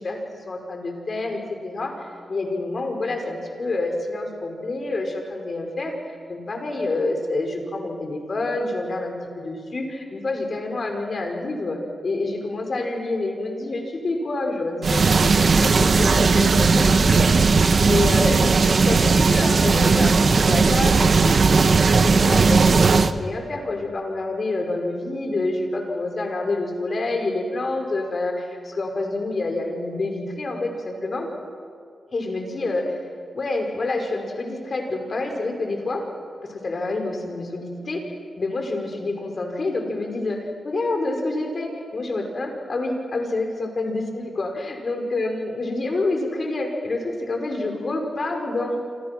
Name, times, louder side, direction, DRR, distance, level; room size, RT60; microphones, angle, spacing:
voice 1, 0.0-17.6 17.9-18.5 18.8-21.3 21.7-31.3 32.1-33.0 33.3-36.0 36.5-38.0 38.4-48.8, left 2 dB, 50° left, 3 dB, 5.5 m, -27 dB
sound 1, 14.8-23.1, right 4 dB, 55° right, 1.2 m, -17 dB
27.5 x 27.0 x 6.2 m, 2.2 s
cardioid pair, 70°, 0 cm